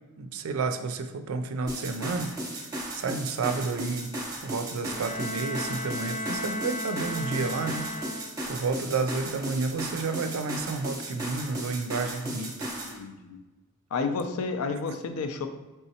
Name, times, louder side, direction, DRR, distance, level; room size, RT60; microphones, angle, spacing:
voice 1, 0.2-4.1 4.4-7.9 8.5-12.6, right 4 dB, 70° right, 8 dB, 0.4 m, -31 dB
sound 1, 1.7-13.0, right 1 dB, 15° right, 0.7 m, -36 dB
Bowed string instrument, 4.9-8.7, left 1 dB, 25° left, 0.7 m, -35 dB
voice 2, 12.8-13.4 13.9-15.5, left 4 dB, 80° left, 7 dB, 0.4 m, -31 dB
4.1 x 3.5 x 2.7 m, 1.2 s
head